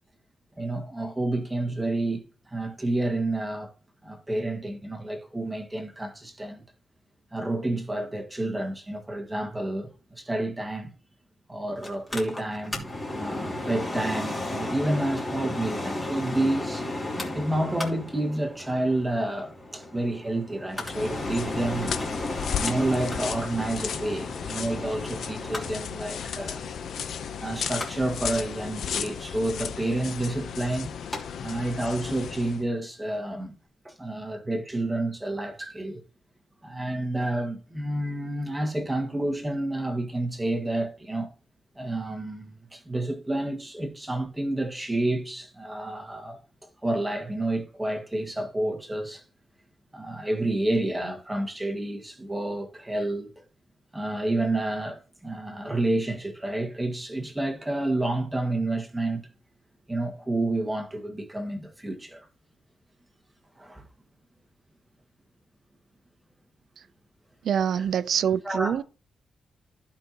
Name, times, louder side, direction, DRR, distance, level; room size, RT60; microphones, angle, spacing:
voice 1, 0.6-3.7 4.0-6.6 7.3-10.9 11.5-16.9 17.3-22.0 22.5-26.7 27.0-27.1 27.4-30.9 31.4-33.6 33.8-36.0 36.6-41.3 41.8-49.2 49.9-53.4 53.9-59.3 59.9-62.3 63.6-63.9 68.5-68.8, right 1 dB, 10° right, 1.8 m, -29 dB
Mechanical fan, 11.8-31.2 31.5-31.6, left 1 dB, 20° left, 2.8 m, -35 dB
sound 1, 20.7-32.6, left 8 dB, 70° left, 0.7 m, -35 dB
voice 2, 67.4-68.8, right 8 dB, 65° right, 0.5 m, -25 dB
15.0 x 5.7 x 2.9 m
wide cardioid pair, 170°, 0 cm